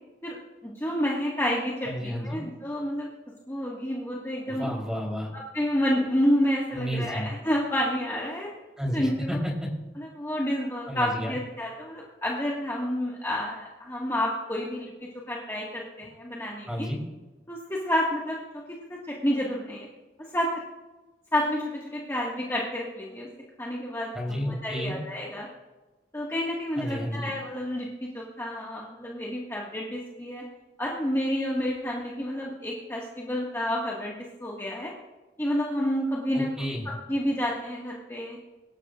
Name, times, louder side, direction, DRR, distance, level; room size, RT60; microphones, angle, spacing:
voice 1, 0.6-3.1 3.5-4.7 5.3-8.5 8.9-9.4 10.0-14.9 15.3-16.9 17.5-18.4 18.7-19.9 20.3-20.6 21.3-23.3 23.6-24.1 24.6-25.5 26.1-30.4 30.8-34.9 35.4-36.5 36.9-38.4, equal, 15° left, -4 dB, 1.8 m, -29 dB
voice 2, 1.9-2.4 4.5-5.3 6.7-7.3 8.8-9.7 10.9-11.4 16.7-17.0 24.1-25.0 26.8-27.3 36.3-36.9, equal, 5° right, -1 dB, 3.6 m, -31 dB
24.0 x 13.0 x 2.5 m, 1.2 s
head